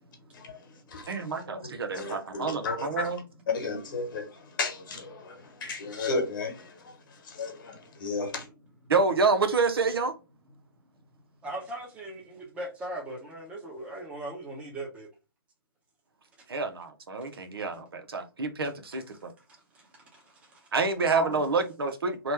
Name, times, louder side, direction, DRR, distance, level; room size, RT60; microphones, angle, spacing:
voice 1, 1.1-3.2 8.9-10.1 16.5-19.3 20.7-22.3, right 4 dB, 80° right, 0.7 m, -28 dB
voice 2, 1.9-3.1 3.5-4.3 4.6-6.9 7.2-8.4, left 3 dB, 60° left, 1.1 m, -34 dB
voice 3, 11.4-15.1 20.1-20.2 21.1-21.4, right 2 dB, 10° right, 0.8 m, -38 dB
2.9 x 2.2 x 3.1 m
hypercardioid pair, 145°, 12 cm